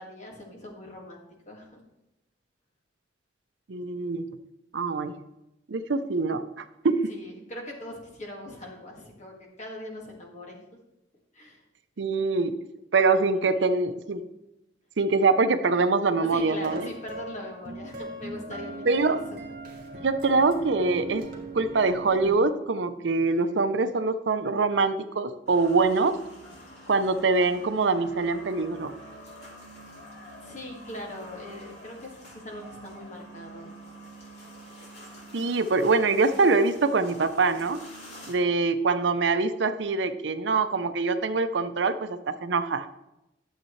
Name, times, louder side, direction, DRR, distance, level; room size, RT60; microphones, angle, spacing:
voice 1, 0.0-1.8 7.1-10.6 11.3-11.6 16.3-19.4 30.4-33.7, left 1 dB, 40° left, 0 dB, 1.9 m, -41 dB
voice 2, 3.7-4.2 4.7-5.1 5.7-7.1 12.0-12.6 12.9-14.2 15.0-16.9 18.9-19.2 20.0-21.2 21.5-26.2 26.9-28.9 35.3-37.8 38.3-42.9, right 3 dB, 75° right, 11 dB, 0.6 m, -24 dB
sound 1, 16.5-22.3, right 2 dB, 50° right, 1.8 m, -39 dB
sound 2, 25.5-38.3, equal, 65° left, 3.3 m, -47 dB
11.5 x 7.4 x 3.2 m, 0.90 s
head